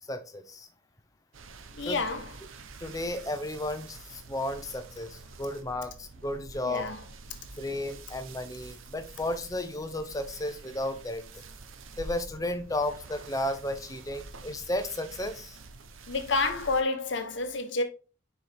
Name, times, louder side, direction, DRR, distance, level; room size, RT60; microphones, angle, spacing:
voice 1, 0.1-0.7 1.8-2.0 2.8-6.9 7.6-11.2 12.0-15.6, left 1 dB, 15° left, 0.7 m, -33 dB
sound 1, 1.3-16.8, right 3 dB, 80° right, 0.7 m, -47 dB
voice 2, 1.7-2.3 6.6-7.0 16.1-17.8, left 3 dB, 65° left, 1.0 m, -29 dB
6.5 x 4.6 x 3.4 m
head